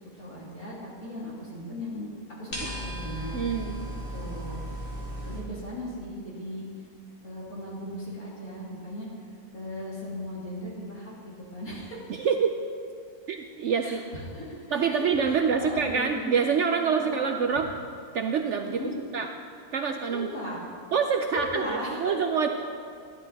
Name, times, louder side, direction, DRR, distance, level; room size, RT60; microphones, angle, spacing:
voice 1, 0.2-2.1 2.4-3.4 4.1-4.7 5.2-6.6 7.2-9.1 9.5-12.0 13.8-16.3 17.1-17.2 18.6-18.9 20.1-20.6 21.3-22.0, left 1 dB, 65° left, -6 dB, 3.4 m, -37 dB
sound 1, 2.5-5.4, equal, 35° left, 2.7 m, -36 dB
voice 2, 3.3-3.8 5.3-5.7 12.1-12.5 13.3-14.0 14.7-17.7 18.1-18.8 19.1-19.3 19.7-20.3 20.9-22.5, right 6 dB, 65° right, 5 dB, 0.7 m, -26 dB
12.5 x 11.5 x 4.1 m, 2.3 s
omnidirectional pair, 1.6 m